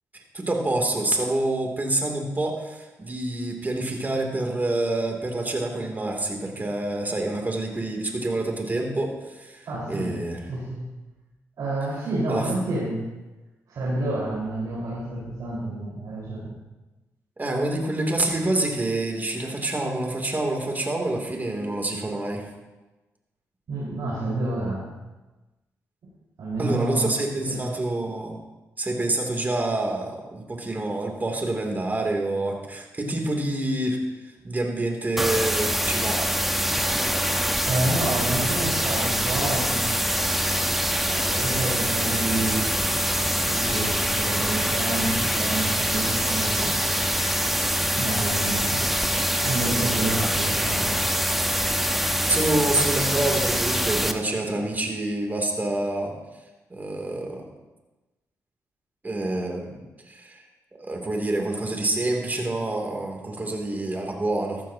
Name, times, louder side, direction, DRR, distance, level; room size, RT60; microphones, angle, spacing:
voice 1, 0.3-10.4 12.3-12.5 17.4-22.4 26.6-28.4 28.8-34.0 34.4-36.2 48.8-48.9 52.3-56.1 56.7-57.4 59.0-59.7 60.1-60.4 60.7-64.6, right 2 dB, 30° right, 1 dB, 2.9 m, -27 dB
voice 2, 9.7-10.9 11.6-13.1 13.7-16.6 23.7-25.0 26.4-27.1 27.5-27.6 37.6-39.9 40.3-40.6 41.0-42.7 43.4-47.0 47.9-48.8 49.1-50.9, right 2 dB, 70° right, -8 dB, 4.7 m, -29 dB
sound 1, 35.2-54.1, equal, 5° right, 1.2 m, -24 dB
13.5 x 13.5 x 2.9 m, 1.1 s
supercardioid pair, 55°, 6 cm